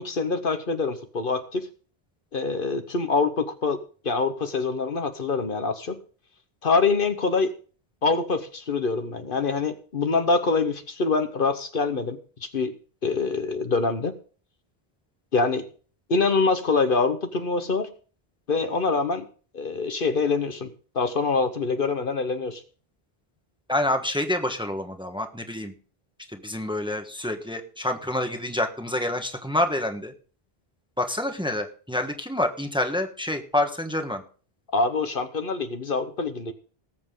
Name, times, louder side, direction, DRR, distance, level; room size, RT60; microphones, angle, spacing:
voice 1, 0.0-1.7 2.3-3.8 4.0-6.0 6.6-7.5 8.0-12.7 13.0-14.1 15.3-15.6 16.1-17.9 18.5-19.3 19.5-20.7 20.9-22.6 34.7-36.5, left 4 dB, 60° left, 8 dB, 1.2 m, -25 dB
voice 2, 23.7-25.7 26.3-30.1 31.0-34.2, left 1 dB, 5° right, 5 dB, 1.2 m, -27 dB
19.0 x 7.8 x 3.8 m, 0.40 s
omnidirectional pair, 1.0 m